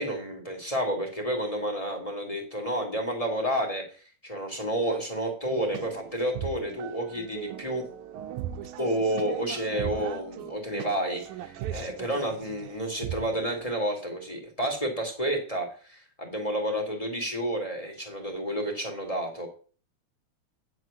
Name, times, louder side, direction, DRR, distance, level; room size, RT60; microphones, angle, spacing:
voice 1, 0.0-3.8 4.2-7.8 8.8-19.5, right 1 dB, 15° left, 3 dB, 1.8 m, -30 dB
sound 1, 5.4-13.7, right 10 dB, 80° right, 2.1 m, -39 dB
9.8 x 4.8 x 6.6 m, 0.40 s
omnidirectional pair, 3.5 m